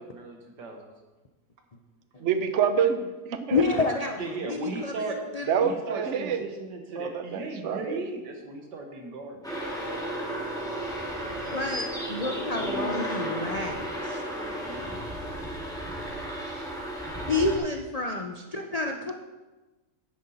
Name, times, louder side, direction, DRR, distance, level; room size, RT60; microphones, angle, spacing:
voice 1, 0.1-0.8 4.2-5.2 5.6-9.6 9.9-10.0 14.4-15.0, right 3 dB, 90° right, 3 dB, 2.0 m, -37 dB
voice 2, 2.2-3.6 5.5-6.4 7.0-8.0 12.6-13.2, right 7 dB, 55° right, 9 dB, 0.9 m, -27 dB
voice 3, 3.5-5.5 11.5-14.2 17.3-19.1, left 3 dB, 60° left, 3 dB, 0.4 m, -29 dB
sound 1, 9.4-17.6, right 1 dB, ahead, 2.1 m, -33 dB
9.8 x 9.2 x 4.1 m, 1.2 s
omnidirectional pair, 1.8 m